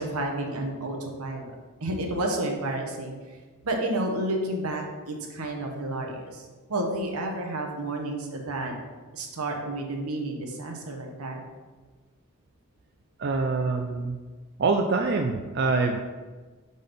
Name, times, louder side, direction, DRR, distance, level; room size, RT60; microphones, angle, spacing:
voice 1, 0.0-1.5 1.8-3.1 3.6-8.7 9.1-11.4, right 1 dB, 80° right, 1 dB, 1.1 m, -31 dB
voice 2, 13.2-14.2 14.6-16.0, right 3 dB, 50° right, 3 dB, 0.4 m, -25 dB
5.5 x 4.0 x 5.2 m, 1.3 s
head